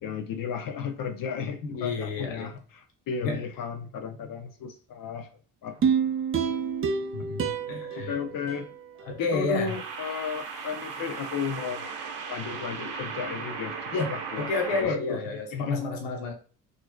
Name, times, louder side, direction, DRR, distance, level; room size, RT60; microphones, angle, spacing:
voice 1, 0.0-5.3 5.6-5.8 7.2-7.3 7.9-8.8 9.2-11.9 12.3-14.5 14.8-15.8, left 6 dB, 50° left, 7 dB, 0.6 m, -34 dB
voice 2, 1.6-2.5 3.2-3.4 7.1-8.1 9.0-9.7 13.9-14.1 14.4-16.3, left 3 dB, 80° left, 1 dB, 1.1 m, -30 dB
sound 1, 5.7-6.0 9.7-14.9, right 5 dB, 65° right, 0.9 m, -37 dB
sound 2, 5.8-9.1 9.6-9.7, right 6 dB, 30° right, 0.5 m, -28 dB
4.1 x 3.2 x 2.2 m, 0.41 s
supercardioid pair, 65°, 44 cm